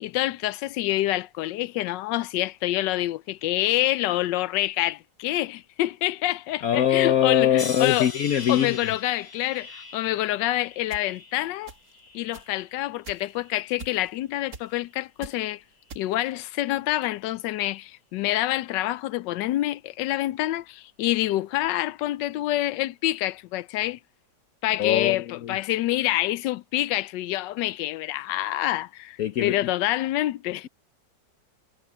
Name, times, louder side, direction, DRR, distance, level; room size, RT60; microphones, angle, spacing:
voice 1, 0.0-8.1 8.5-11.7 12.1-15.6 16.0-24.0 24.6-30.7, left 15 dB, 80° left, 1.2 m, -27 dB
voice 2, 6.6-8.9 24.8-25.6 29.2-29.6, left 10 dB, 65° left, 1.0 m, -23 dB
sound 1, 7.6-12.7 13.2-13.9 14.6-14.9, left 3 dB, 35° left, 2.6 m, -42 dB
sound 2, 10.9-11.0 11.7-12.0 12.3-12.5 13.0-13.4 13.8-14.2 14.5-14.8 15.2-15.4 15.9-16.3, right 4 dB, 55° right, 2.0 m, -42 dB
omnidirectional pair, 1.9 m